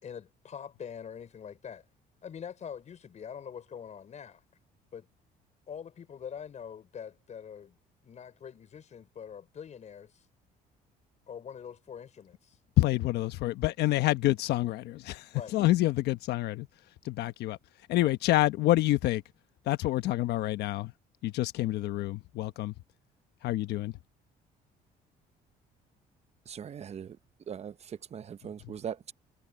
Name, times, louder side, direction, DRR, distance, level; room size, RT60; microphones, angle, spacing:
voice 1, 0.0-1.8 2.2-4.4 4.9-5.1 5.7-7.8 8.0-10.2 11.3-12.6 15.3-15.6, left 7 dB, 45° left, 4.8 m, -44 dB
voice 2, 12.8-15.2 15.5-16.7 17.1-17.6 17.9-19.2 19.7-20.9 21.2-22.7 23.4-23.9, left 16 dB, 80° left, 1.2 m, -27 dB
voice 3, 26.5-27.2 27.5-29.1, right 8 dB, 40° right, 0.9 m, -40 dB
cardioid pair, 110°, 17 cm